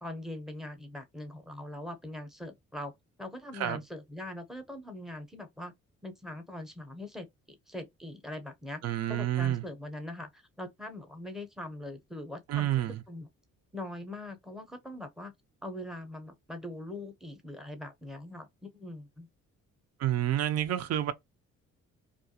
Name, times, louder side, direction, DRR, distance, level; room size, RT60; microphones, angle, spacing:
voice 1, 0.0-2.9 3.2-5.7 6.0-8.8 9.1-13.3 13.7-15.3 15.6-19.3, left 1 dB, ahead, 0.7 m, -42 dB
voice 2, 8.8-9.6 12.5-13.0 20.0-21.1, right 12 dB, 55° right, 0.5 m, -29 dB
2.4 x 2.2 x 2.7 m
cardioid pair, 90°, 30 cm